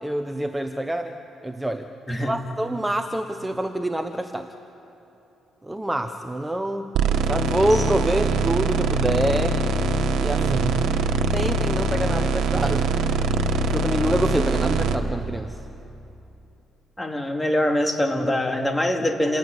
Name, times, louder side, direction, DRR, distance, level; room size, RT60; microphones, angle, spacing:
voice 1, 0.0-1.2 1.4-1.9 2.2-4.5 5.6-6.9 7.3-9.6 10.2-10.7 11.3-12.9 13.7-15.6, right 1 dB, 10° right, 6 dB, 1.1 m, -26 dB
voice 2, 2.1-2.4 10.4-10.8 17.0-19.4, left 1 dB, 15° left, 3 dB, 2.7 m, -24 dB
sound 1, 6.9-14.9, right 3 dB, 80° right, 1.6 m, -23 dB
28.0 x 17.5 x 9.8 m, 2.9 s
cardioid pair, 90°, 0 cm